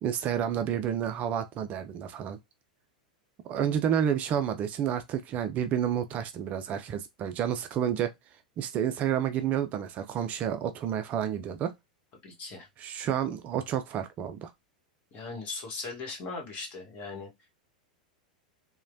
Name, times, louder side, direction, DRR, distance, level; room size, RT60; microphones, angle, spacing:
voice 1, 0.0-2.4 3.4-8.1 8.6-11.7 12.8-14.5, right 9 dB, 35° right, 0.3 m, -30 dB
voice 2, 12.2-12.7 15.1-17.3, left 3 dB, 40° left, 1.3 m, -38 dB
3.0 x 2.1 x 2.5 m
hypercardioid pair, 95°, 4 cm